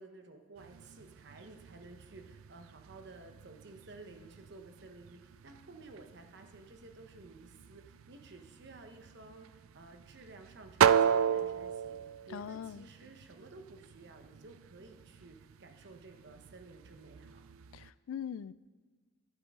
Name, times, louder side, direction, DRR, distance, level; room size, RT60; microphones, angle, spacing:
voice 1, 0.0-17.4, right 3 dB, 60° right, 5 dB, 1.0 m, -53 dB
sound 1, 0.6-17.9, right 8 dB, 85° right, 0.4 m, -36 dB
voice 2, 12.3-12.9 17.7-18.5, left 8 dB, 80° left, 18 dB, 0.3 m, -41 dB
11.0 x 11.0 x 3.7 m, 1.4 s
head